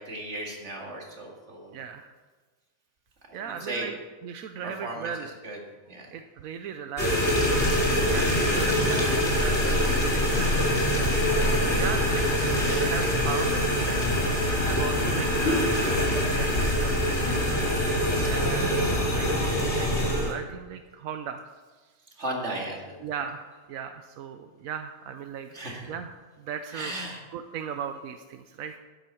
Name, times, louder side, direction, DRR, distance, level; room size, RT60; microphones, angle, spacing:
voice 1, 0.0-1.7 3.3-3.9 4.6-6.1 17.2-17.6 18.1-18.6 22.2-23.0 25.5-26.0 26.7-27.2 27.6-27.7, right 1 dB, 55° right, -1 dB, 2.6 m, -37 dB
voice 2, 1.7-2.1 3.3-4.0 4.2-5.3 6.1-7.3 8.1-13.9 14.6-17.5 18.1-21.4 23.0-25.5 25.9-26.9 27.3-28.7, right 7 dB, 85° right, 7 dB, 1.1 m, -37 dB
sound 1, 7.0-20.3, equal, 55° left, 2.7 m, -24 dB
12.5 x 9.7 x 4.4 m, 1.3 s
omnidirectional pair, 1.4 m